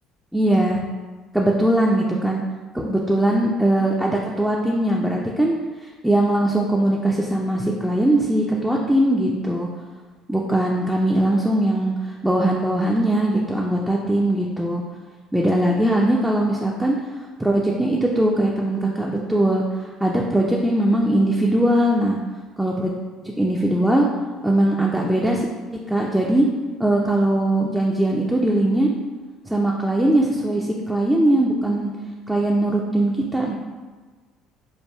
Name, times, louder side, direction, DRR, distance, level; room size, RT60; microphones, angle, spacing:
voice 1, 0.3-0.8 1.3-2.4 2.7-5.6 6.0-9.7 10.3-14.8 15.3-17.0 17.4-19.6 20.0-22.2 22.6-22.9 23.2-24.1 24.4-25.5 25.9-26.5 26.8-28.9 29.5-31.9 32.3-33.5, right 1 dB, 5° right, -2 dB, 0.4 m, -20 dB
4.6 x 2.3 x 2.2 m, 1.4 s
figure-of-eight pair, 55°, 0 cm